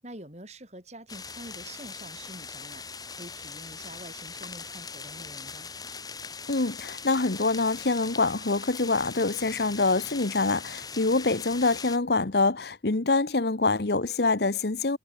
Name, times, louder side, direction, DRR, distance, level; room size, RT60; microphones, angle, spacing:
voice 1, 0.0-5.7, right 1 dB, 40° right, 7.1 m, -46 dB
sound 1, 1.1-12.0, left 5 dB, 20° left, 4.2 m, -41 dB
voice 2, 6.5-15.0, left 3 dB, 60° left, 1.1 m, -25 dB
head